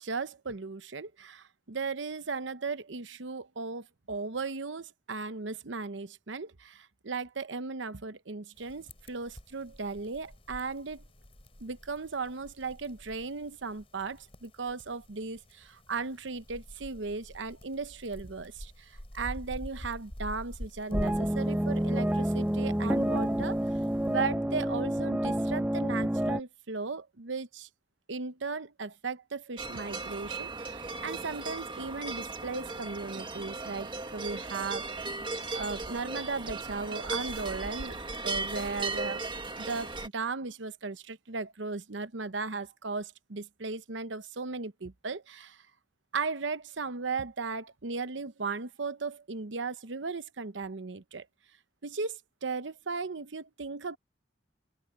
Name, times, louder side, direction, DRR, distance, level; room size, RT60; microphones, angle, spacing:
voice 1, 0.0-11.0 11.6-23.6 24.1-27.7 28.1-35.2 35.5-39.2 39.6-45.6 46.1-51.3 51.8-54.0, right 4 dB, 85° right, 0.9 m, -36 dB
sound 1, 8.6-24.2, equal, 30° left, 4.6 m, -46 dB
sound 2, 20.9-26.4, right 1 dB, 5° right, 0.5 m, -29 dB
sound 3, 29.6-40.1, right 3 dB, 25° right, 1.6 m, -37 dB
head